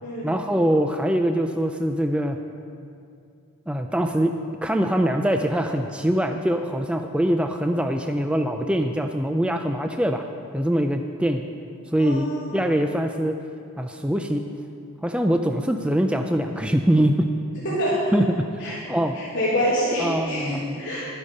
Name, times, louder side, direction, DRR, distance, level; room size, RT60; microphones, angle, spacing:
voice 1, 0.2-2.4 3.7-10.2 10.5-11.4 11.9-13.4 13.8-14.4 15.0-17.3 18.1-19.2 20.0-20.8, equal, 5° right, 5 dB, 0.3 m, -23 dB
voice 2, 12.0-12.5 17.6-17.9 18.6-18.8 19.1-21.1, equal, 55° left, -11 dB, 3.1 m, -26 dB
12.0 x 9.8 x 5.4 m, 2.4 s
head